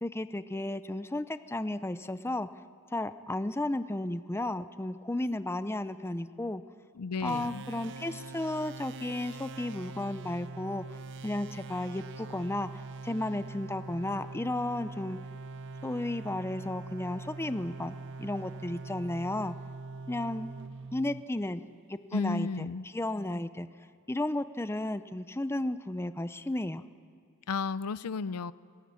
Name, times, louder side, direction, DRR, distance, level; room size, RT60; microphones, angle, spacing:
voice 1, 0.0-2.5 2.9-6.6 7.2-11.0 11.2-15.2 15.8-19.6 20.1-20.5 20.9-22.7 22.9-23.7 24.1-26.8, left 1 dB, 10° left, 12 dB, 0.6 m, -33 dB
voice 2, 7.0-7.6 22.1-22.8 27.5-28.5, left 4 dB, 90° left, 17 dB, 0.6 m, -33 dB
sound 1, 7.2-21.8, right 3 dB, 55° right, 0.7 m, -43 dB
21.5 x 19.0 x 9.6 m, 2.1 s
head